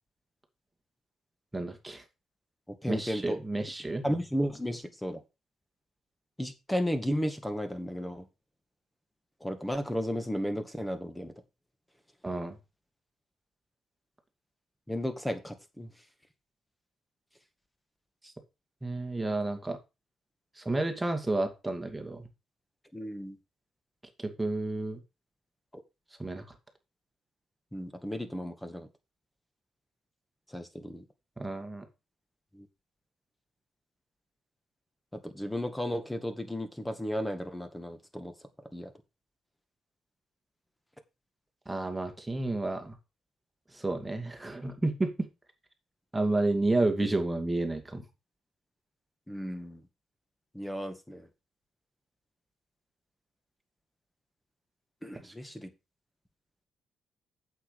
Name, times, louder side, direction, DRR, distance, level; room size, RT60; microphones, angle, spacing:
voice 1, 1.5-2.0 2.9-4.1 12.2-12.6 18.2-18.3 18.8-19.8 20.6-22.3 24.2-25.0 26.2-26.5 31.4-31.9 41.7-43.0 43.7-45.3 46.1-48.0 55.2-55.3, right 2 dB, 15° right, 2.4 m, -31 dB
voice 2, 2.7-3.4 4.0-5.2 6.4-8.3 9.4-11.3 14.9-15.9 22.9-23.4 27.7-28.9 30.5-31.0 32.5-32.7 35.1-38.3 38.7-38.9 49.3-49.8 50.5-51.3 55.0-55.7, equal, 5° left, 2.0 m, -34 dB
8.3 x 7.5 x 5.0 m
cardioid pair, 90°, 0 cm